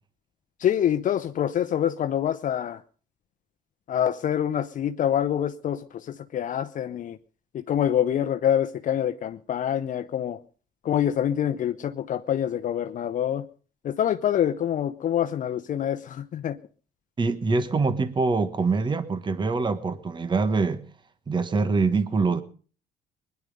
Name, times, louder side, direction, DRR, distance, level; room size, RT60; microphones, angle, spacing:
voice 1, 0.6-2.8 3.9-7.2 7.5-10.4 10.8-13.5 13.8-16.6, left 10 dB, 50° left, 0.8 m, -26 dB
voice 2, 17.2-20.8 21.3-22.4, right 4 dB, 25° right, 1.2 m, -24 dB
21.0 x 11.0 x 5.3 m
cardioid pair, 110°, 17 cm